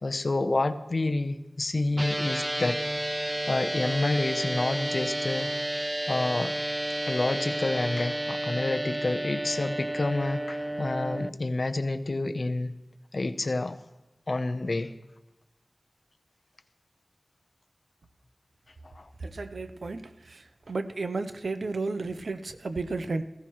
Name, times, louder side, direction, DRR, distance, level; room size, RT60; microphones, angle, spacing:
voice 1, 0.0-2.8 3.2-5.5 6.1-6.5 7.1-12.7 13.1-13.8 14.3-14.9 18.8-19.1, left 2 dB, 60° left, 9 dB, 0.7 m, -29 dB
sound 1, 2.0-11.3, right 1 dB, 20° right, 0.3 m, -31 dB
voice 2, 19.2-20.0 20.3-20.4 20.7-23.2, right 3 dB, 85° right, 10 dB, 0.6 m, -32 dB
15.5 x 15.0 x 3.1 m, 1.0 s
wide cardioid pair, 45°, 0 cm